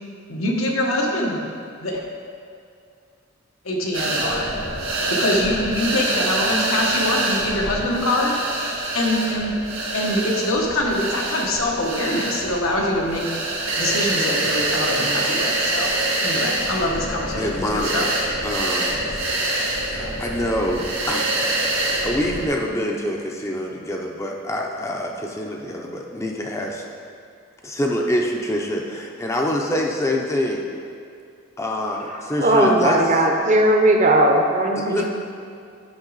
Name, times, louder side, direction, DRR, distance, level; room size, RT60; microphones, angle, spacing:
voice 1, 0.3-1.4 1.8-2.0 3.6-4.5 5.1-8.7 8.9-9.6 9.9-13.3 13.8-15.9 16.2-18.1, left 1 dB, 85° left, 0 dB, 1.2 m, -24 dB
sound 1, 3.9-22.5, right 2 dB, 75° right, 1.8 m, -25 dB
voice 2, 17.4-18.2 18.4-21.3 22.0-26.8 27.6-30.7 31.6-33.3 34.8-35.1, left 1 dB, 15° left, 0 dB, 0.5 m, -26 dB
voice 3, 32.4-35.1, right 1 dB, 35° right, 2 dB, 0.7 m, -17 dB
8.9 x 5.9 x 4.0 m, 2.4 s
head